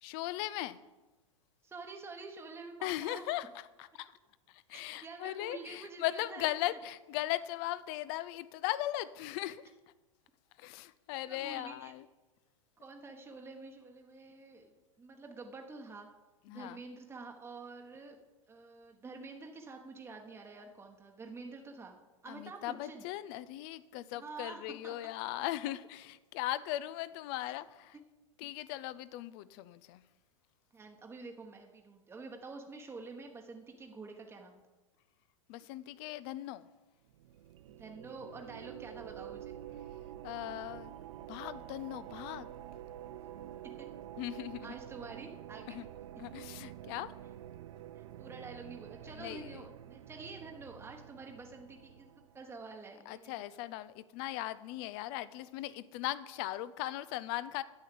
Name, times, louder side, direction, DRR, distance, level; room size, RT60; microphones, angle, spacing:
voice 1, 0.0-0.8 2.8-4.2 4.5-9.6 10.6-12.1 16.5-16.8 22.3-28.0 28.4-30.0 35.5-36.7 40.2-41.0 41.3-42.5 44.2-44.8 45.7-45.8 46.2-47.1 49.0-49.7 53.1-57.6, left 15 dB, 45° left, 16 dB, 0.6 m, -38 dB
voice 2, 1.6-3.3 4.7-6.6 11.3-11.9 12.8-14.7 15.0-16.1 16.5-18.2 18.5-22.0 22.2-23.0 24.1-25.0 30.7-34.6 37.7-39.6 43.6-43.9 44.6-45.8 48.0-53.6, right 3 dB, 15° right, 2 dB, 1.1 m, -48 dB
sound 1, 37.1-52.5, right 12 dB, 65° right, 0.5 m, -48 dB
9.7 x 7.7 x 6.7 m, 1.2 s
hypercardioid pair, 100°, 17 cm